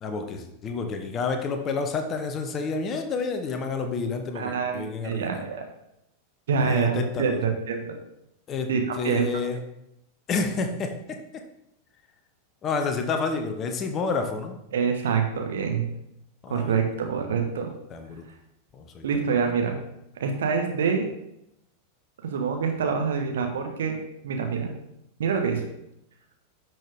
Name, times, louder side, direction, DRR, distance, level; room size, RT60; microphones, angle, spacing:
voice 1, 0.0-5.5 6.6-7.4 8.5-8.7 9.0-9.6 10.3-11.4 12.6-14.6 16.4-16.7 17.9-18.2 18.7-19.3, left 4 dB, 30° left, 6 dB, 1.1 m, -29 dB
voice 2, 4.3-5.7 6.5-7.8 8.7-9.3 14.7-15.9 16.5-17.7 19.0-19.8 20.2-21.0 22.2-24.0 24.2-24.7 25.2-25.6, right 6 dB, 60° right, 3 dB, 1.5 m, -26 dB
10.5 x 6.3 x 3.6 m, 0.80 s
figure-of-eight pair, 90°, 0 cm